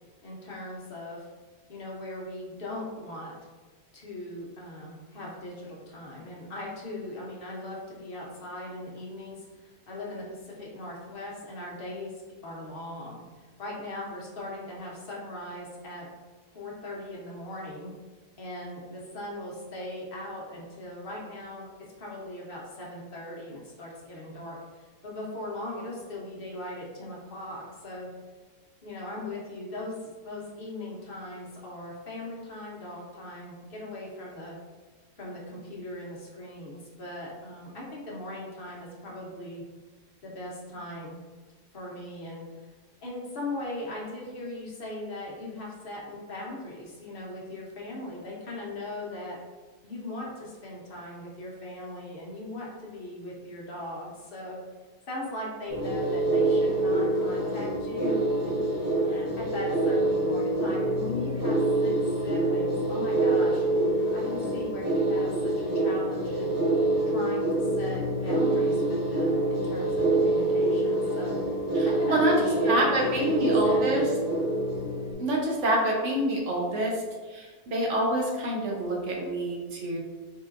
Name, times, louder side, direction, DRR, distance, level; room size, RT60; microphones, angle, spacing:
voice 1, 0.2-1.3 1.7-3.3 3.9-12.1 12.4-16.1 16.5-17.9 18.4-28.1 28.8-34.6 35.2-39.6 40.2-41.2 41.7-42.5 43.0-49.4 49.8-54.6 55.1-58.6 59.0-66.6 67.1-71.4 71.8-73.9, left 1 dB, 45° left, -4 dB, 0.9 m, -39 dB
sound 1, 55.7-75.1, right 2 dB, 15° left, 1.2 m, -26 dB
voice 2, 71.7-72.3 72.7-74.1 75.2-77.0 77.3-80.0, right 1 dB, 60° right, -2 dB, 1.0 m, -27 dB
3.7 x 3.6 x 2.5 m, 1.3 s
omnidirectional pair, 1.6 m